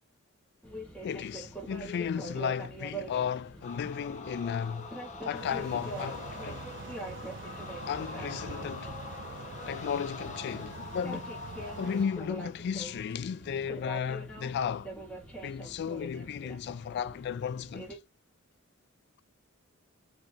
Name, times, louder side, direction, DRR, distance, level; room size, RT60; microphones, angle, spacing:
sound 1, 0.6-18.0, right 1 dB, 5° left, 1.4 m, -44 dB
voice 1, 1.0-4.9 5.2-6.7 7.9-8.9 9.7-11.3 11.7-14.9 15.4-18.0, left 7 dB, 50° left, 0.3 m, -34 dB
sound 2, 3.6-12.5, left 4 dB, 35° left, 0.7 m, -44 dB
sound 3, 5.3-12.1, right 5 dB, 60° right, 0.5 m, -45 dB
3.9 x 3.2 x 2.9 m
head